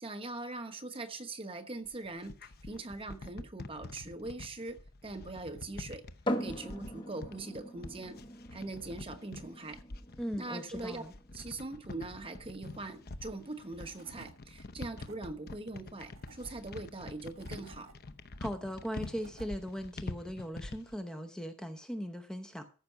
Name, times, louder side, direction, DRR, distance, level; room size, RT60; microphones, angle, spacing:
voice 1, 0.0-6.1 6.4-8.2 8.5-9.8 10.4-11.0 11.3-17.9, right 2 dB, 25° right, 1.1 m, -42 dB
sound 1, 1.8-21.0, left 2 dB, 50° left, 0.7 m, -46 dB
sound 2, 6.2-19.7, equal, 25° left, 1.1 m, -44 dB
voice 2, 10.2-11.1 18.4-22.6, equal, 5° left, 0.8 m, -39 dB
Tools / Wood, 13.4-13.5 13.8-14.3 14.8-15.2 15.9-16.5 17.1-17.9 18.7-19.5, right 3 dB, 75° right, 1.6 m, -56 dB
14.0 x 5.9 x 5.8 m
head